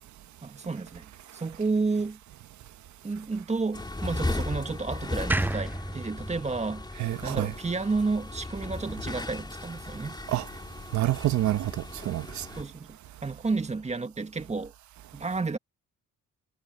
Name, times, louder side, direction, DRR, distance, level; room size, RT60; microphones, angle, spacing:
voice 1, 0.4-1.1 1.4-2.2 3.0-6.9 7.2-10.2 12.6-14.7 15.1-15.6, right 3 dB, 20° right, 1.7 m, -31 dB
sound 1, 3.7-12.6, left 2 dB, 15° left, 3.4 m, -36 dB
sound 2, 5.3-8.5, right 2 dB, 5° right, 0.4 m, -33 dB
voice 2, 7.0-7.5 10.3-10.5 10.9-12.5, right 14 dB, 70° right, 1.1 m, -27 dB
cardioid pair, 90°, 30 cm